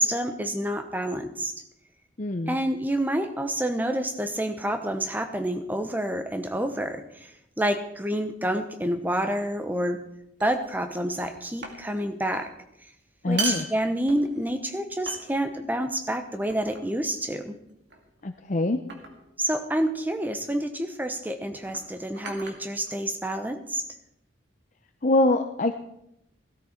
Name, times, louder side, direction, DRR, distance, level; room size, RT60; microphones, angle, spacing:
voice 1, 0.0-1.6 2.5-10.0 10.4-12.5 13.3-17.6 19.4-23.8, right 1 dB, 10° right, 8 dB, 0.9 m, -28 dB
voice 2, 2.2-2.6 13.2-13.7 18.2-18.8 25.0-25.7, left 2 dB, 40° left, 6 dB, 0.6 m, -24 dB
sound 1, 9.3-9.6 10.4-10.9 11.2-12.0 12.3-12.5 13.2-14.5 15.1-15.7 16.5-17.0 17.9-18.2 18.9-19.3 20.5-20.7 21.6-23.3, right 4 dB, 60° right, 2.2 m, -38 dB
16.0 x 13.0 x 4.4 m, 0.80 s
head